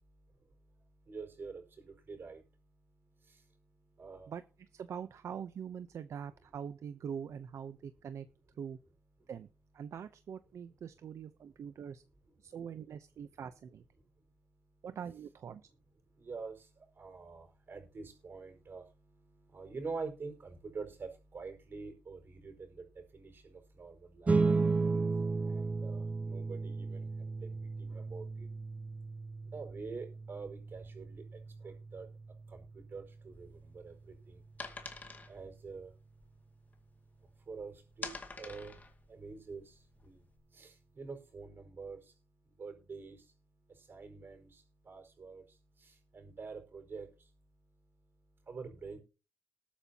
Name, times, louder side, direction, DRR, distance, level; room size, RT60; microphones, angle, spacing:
voice 1, 0.3-4.3 5.9-6.0 7.8-7.9 9.2-9.3 11.4-11.6 13.2-13.4 14.0-14.9 16.0-49.0, right 4 dB, 40° right, 4 dB, 4.9 m, -48 dB
voice 2, 4.7-8.3 8.6-8.8 9.3-9.5 9.7-12.0 12.4-13.8 14.8-15.7, right 7 dB, 60° right, 11 dB, 0.7 m, -43 dB
sound 1, 24.3-35.0, right 4 dB, 25° right, 0.9 m, -35 dB
sound 2, 33.3-37.3 37.7-40.4, left 3 dB, 30° left, 2.2 m, -47 dB
20.0 x 8.7 x 2.9 m, 0.32 s
cardioid pair, 130°, 6 cm